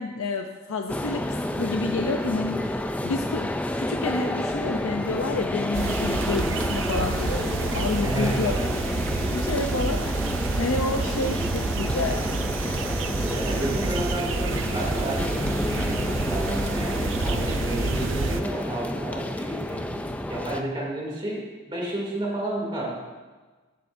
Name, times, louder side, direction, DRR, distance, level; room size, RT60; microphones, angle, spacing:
voice 1, 0.0-3.5 3.8-8.5 9.2-12.2, left 3 dB, 80° left, 4 dB, 0.6 m, -29 dB
sound 1, 0.9-20.6, left 1 dB, 5° left, 0.3 m, -30 dB
sound 2, 5.7-18.4, right 3 dB, 70° right, 0.6 m, -29 dB
voice 2, 8.0-8.7 13.3-22.9, right 1 dB, 25° right, -3 dB, 2.7 m, -31 dB
14.5 x 11.0 x 2.6 m, 1.3 s
head